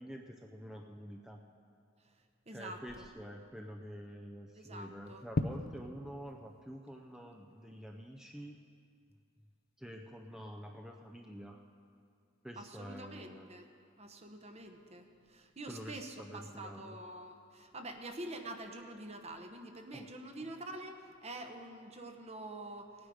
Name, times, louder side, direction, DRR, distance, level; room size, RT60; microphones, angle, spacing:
voice 1, 0.0-1.4 2.5-8.6 9.8-11.6 12.4-13.5 15.7-17.0 19.9-20.0, equal, 5° right, 2 dB, 0.5 m, -47 dB
voice 2, 2.5-3.1 4.6-5.3 12.6-13.7 14.0-22.9, right 1 dB, 35° right, 5 dB, 0.9 m, -46 dB
sound 1, 4.7-21.9, left 2 dB, 50° left, 0.5 m, -48 dB
17.5 x 9.6 x 4.9 m, 2.4 s
head